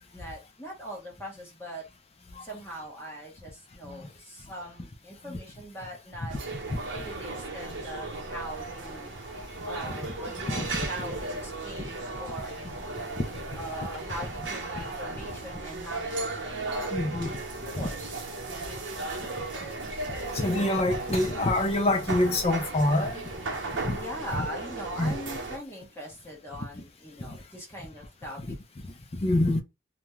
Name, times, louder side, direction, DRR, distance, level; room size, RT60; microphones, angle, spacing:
voice 1, 0.1-1.8 2.4-6.4 7.0-9.1 9.6-12.6 13.6-17.4 17.8-18.2 19.6-19.7 23.9-28.6, equal, 10° left, 1.0 m, -41 dB
sound 1, 6.3-25.6, right 2 dB, 70° right, 0.8 m, -36 dB
voice 2, 10.5-10.8 16.9-17.3 17.8-17.9 20.3-23.2 23.8-24.0 24.4-24.5 25.0-25.1 27.3-27.4 28.5-28.6 29.1-29.6, left 1 dB, 30° left, 0.5 m, -26 dB
2.5 x 2.2 x 3.0 m
head